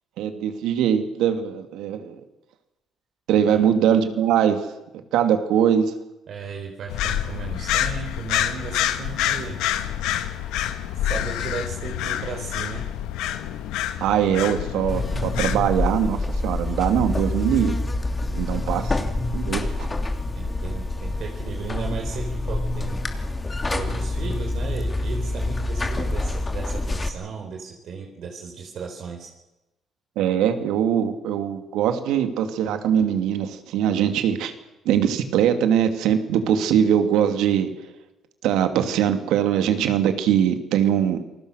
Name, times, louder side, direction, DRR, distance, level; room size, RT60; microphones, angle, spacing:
voice 1, 0.2-2.2 3.3-4.6 5.1-5.9 14.0-17.8 18.3-19.9 30.2-34.5 34.8-37.7 38.4-41.2, right 9 dB, 85° right, 8 dB, 2.6 m, -22 dB
voice 2, 6.3-9.6 10.9-12.8 18.3-18.8 19.6-19.7 20.4-23.0 23.7-29.3, right 5 dB, 65° right, 1 dB, 4.1 m, -35 dB
sound 1, 6.9-15.6, left 11 dB, 90° left, 1.6 m, -27 dB
Buzz, 14.9-27.1, left 2 dB, 25° left, 2.8 m, -26 dB
28.5 x 20.0 x 6.6 m, 0.98 s
cardioid pair, 90°, 0 cm